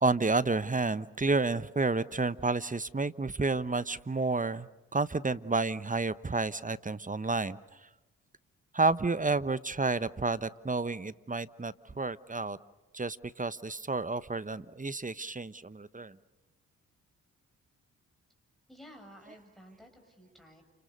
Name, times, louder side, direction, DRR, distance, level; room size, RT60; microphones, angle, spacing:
voice 1, 0.0-7.6 8.7-12.6 12.9-16.2, right 3 dB, 20° right, 15 dB, 1.1 m, -30 dB
voice 2, 18.7-20.6, equal, ahead, 3 dB, 7.9 m, -53 dB
29.5 x 27.5 x 6.7 m, 1.1 s
hypercardioid pair, 40°, 38 cm